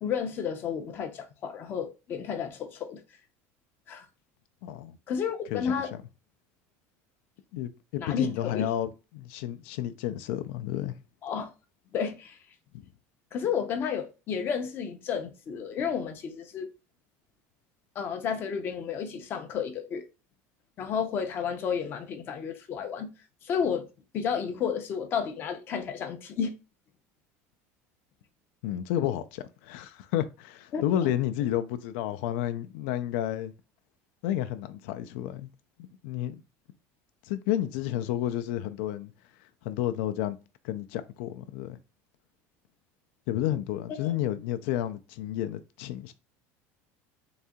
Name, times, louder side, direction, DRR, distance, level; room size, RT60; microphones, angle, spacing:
voice 1, 0.0-3.0 3.9-4.1 5.1-5.9 8.0-8.7 11.2-11.5 11.9-12.4 13.3-16.7 18.0-20.0 20.8-23.1 23.4-23.9 24.1-26.5 30.7-31.1 44.0-44.1, left 7 dB, 30° left, 0.6 m, -31 dB
voice 2, 4.6-4.9 5.5-6.0 7.5-10.9 28.6-33.5 34.2-35.5 35.8-36.4 37.3-39.1 39.6-40.4 40.6-41.8 43.3-46.1, left 12 dB, 75° left, 0.5 m, -31 dB
3.9 x 2.8 x 3.5 m
cardioid pair, 175°, 7 cm